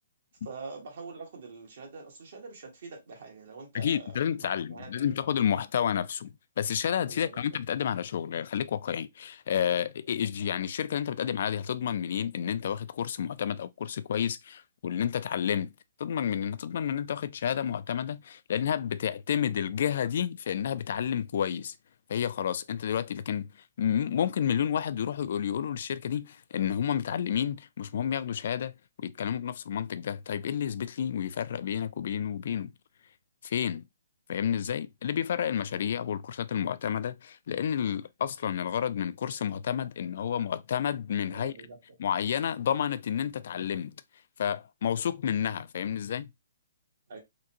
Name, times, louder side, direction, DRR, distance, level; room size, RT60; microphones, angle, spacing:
voice 1, 0.4-4.1 4.4-5.2 7.1-7.4 41.3-42.0 47.1-47.2, right 4 dB, 55° right, 1.5 m, -44 dB
voice 2, 3.7-15.7 16.0-21.7 22.1-23.5 23.8-32.7 33.4-33.8 34.3-41.5 42.0-43.9 44.4-46.3, left 9 dB, 55° left, 0.3 m, -30 dB
3.8 x 2.2 x 2.7 m
hypercardioid pair, 160°, 0 cm